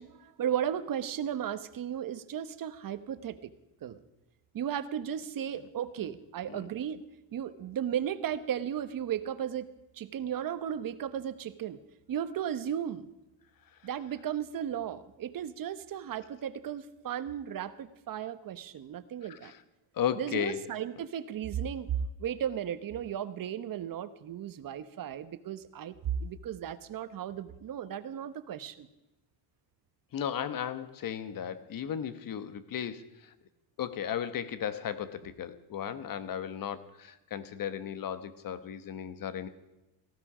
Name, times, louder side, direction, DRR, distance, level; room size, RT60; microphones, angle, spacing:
voice 1, 0.0-3.5 3.8-4.0 4.5-7.0 7.3-11.8 12.1-13.1 13.8-19.5 20.1-28.9, right 9 dB, 40° right, 12 dB, 1.1 m, -35 dB
voice 2, 19.9-20.6 30.1-33.3 33.8-39.5, left 9 dB, 40° left, 13 dB, 1.3 m, -35 dB
18.5 x 15.5 x 5.0 m, 0.97 s
cardioid pair, 125°, 50 cm